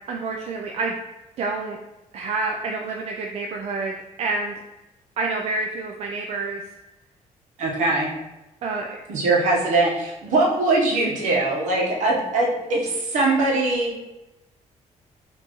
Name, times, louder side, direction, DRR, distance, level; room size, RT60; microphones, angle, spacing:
voice 1, 0.1-1.0 1.4-1.8 2.1-4.6 5.2-6.6 8.6-9.0, right 3 dB, 60° right, 1 dB, 0.4 m, -28 dB
voice 2, 7.6-8.1 9.1-13.9, right 2 dB, 80° right, -2 dB, 1.0 m, -21 dB
4.3 x 2.7 x 3.0 m, 0.97 s
cardioid pair, 135°, 12 cm